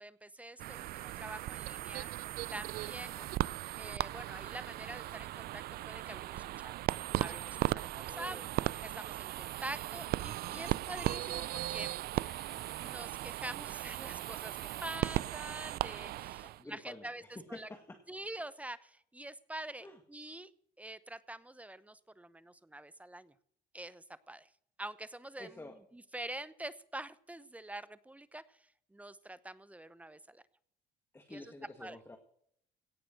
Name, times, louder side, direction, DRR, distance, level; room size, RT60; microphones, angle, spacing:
voice 1, 0.0-2.1 2.5-3.2 3.8-6.7 7.2-8.4 8.8-17.2 17.5-17.7 18.1-20.5 20.8-23.3 23.7-24.5 24.8-25.6 25.9-28.6 28.9-30.4 31.3-31.4 31.8-32.0, right 1 dB, 10° right, 16 dB, 0.8 m, -46 dB
sound 1, 0.6-16.6, right 15 dB, 65° right, 0.4 m, -37 dB
voice 2, 8.1-8.5 10.5-10.8 16.4-18.0 19.8-20.0 25.4-25.8 31.1-32.2, left 2 dB, 15° left, 5 dB, 1.9 m, -50 dB
17.5 x 6.9 x 7.7 m, 0.69 s
cardioid pair, 110°, 17 cm